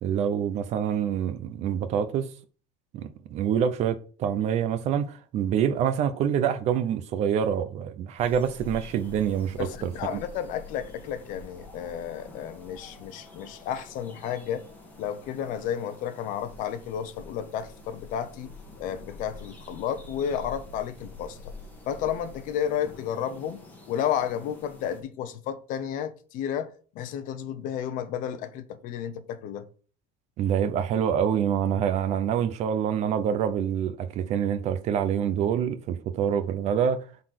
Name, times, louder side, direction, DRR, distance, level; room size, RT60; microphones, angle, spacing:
voice 1, 0.0-2.3 2.9-10.2 30.4-37.1, right 8 dB, 35° right, 0.7 m, -26 dB
sound 1, 8.2-25.0, left 2 dB, 10° left, 1.6 m, -46 dB
voice 2, 9.6-14.7 15.0-18.5 18.8-21.5 21.9-26.7 26.9-29.7, left 9 dB, 45° left, 0.9 m, -32 dB
8.0 x 4.1 x 6.4 m
cardioid pair, 175°, 19 cm